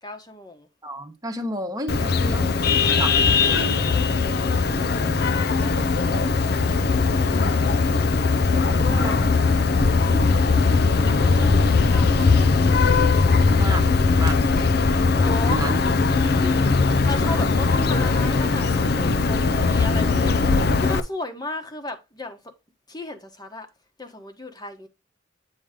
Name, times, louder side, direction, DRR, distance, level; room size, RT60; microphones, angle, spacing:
voice 1, 0.0-0.7 3.8-4.3 5.5-6.2 8.5-9.5 11.0-12.4 15.2-15.6 16.2-22.4 22.9-23.7 24.0-24.9, left 2 dB, 20° left, 1.2 m, -35 dB
voice 2, 0.8-2.5 3.0-3.1 3.5-3.8 7.3-7.6 8.5-9.3 10.1-10.3 13.6-14.7 15.4-15.8, right 1 dB, 20° right, 1.1 m, -32 dB
Vehicle horn car horn honking, 1.9-21.0, left 4 dB, 50° left, 0.5 m, -20 dB
8.9 x 3.1 x 5.0 m
head